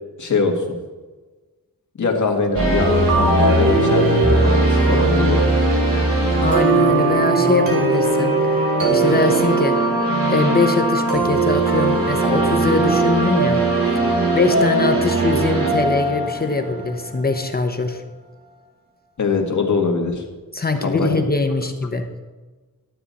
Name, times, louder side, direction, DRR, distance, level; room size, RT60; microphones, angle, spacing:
voice 1, 0.2-0.8 2.0-5.5 19.2-20.2 20.8-21.2, left 4 dB, 60° left, 2 dB, 1.8 m, -22 dB
sound 1, 2.5-17.4, right 2 dB, 70° right, 3.6 m, -18 dB
voice 2, 6.4-9.9 10.3-13.6 13.9-14.0 14.3-18.0 20.5-22.1, left 3 dB, 30° left, 6 dB, 0.8 m, -22 dB
12.5 x 8.9 x 4.2 m, 1.2 s
wide cardioid pair, 120°, 34 cm